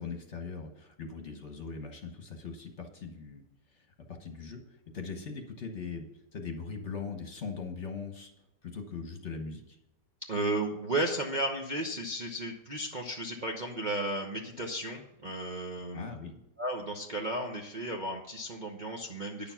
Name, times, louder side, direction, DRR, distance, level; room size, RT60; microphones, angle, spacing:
voice 1, 0.0-3.4 3.7-4.6 4.9-8.3 8.6-9.8 15.9-16.4, left 5 dB, 45° left, 4 dB, 1.3 m, -40 dB
voice 2, 10.3-16.1 16.6-19.5, right 1 dB, 35° right, 0 dB, 0.8 m, -34 dB
10.5 x 7.0 x 5.7 m, 0.88 s
omnidirectional pair, 1.9 m